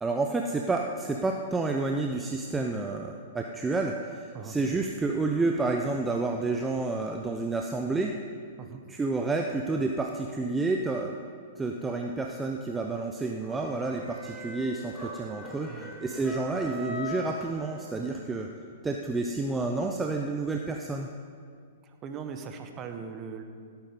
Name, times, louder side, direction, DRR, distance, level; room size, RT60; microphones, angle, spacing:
voice 1, 0.0-8.2 8.9-11.2 11.6-15.7 16.0-18.5 18.8-21.1, right 3 dB, 10° right, 2 dB, 0.8 m, -30 dB
sound 1, 13.4-18.2, left 1 dB, 10° left, 3.3 m, -41 dB
voice 2, 21.8-23.4, right 6 dB, 30° right, 6 dB, 1.4 m, -40 dB
16.0 x 9.1 x 5.4 m, 2.2 s
hypercardioid pair, 110°, 0 cm